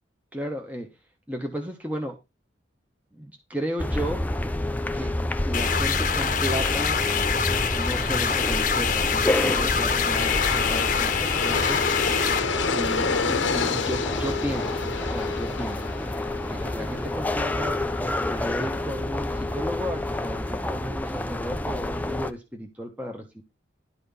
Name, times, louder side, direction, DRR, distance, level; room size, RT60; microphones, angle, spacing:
voice 1, 0.3-0.9 1.3-2.2 3.1-4.3 4.9-5.1 5.4-7.0 7.7-11.8 12.7-15.9 16.5-23.4, equal, 10° right, 1.2 m, -34 dB
sound 1, 3.8-22.3, left 1 dB, 10° left, 0.5 m, -29 dB
sound 2, 5.5-12.4, left 6 dB, 45° left, 1.0 m, -25 dB
Aircraft, 9.0-20.1, left 5 dB, 80° left, 1.0 m, -31 dB
11.5 x 4.4 x 5.4 m
head